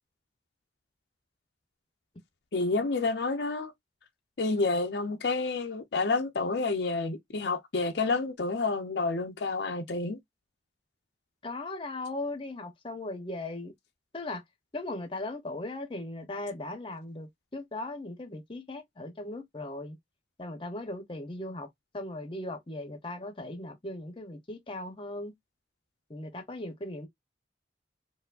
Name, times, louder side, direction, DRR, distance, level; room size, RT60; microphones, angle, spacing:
voice 1, 2.5-3.7 4.4-10.2, left 3 dB, 75° left, 0.6 m, -29 dB
voice 2, 11.4-13.7 14.1-14.4 14.7-20.0 20.4-21.7 21.9-25.3 26.1-27.1, left 2 dB, 30° left, 0.7 m, -38 dB
4.4 x 2.1 x 2.4 m
head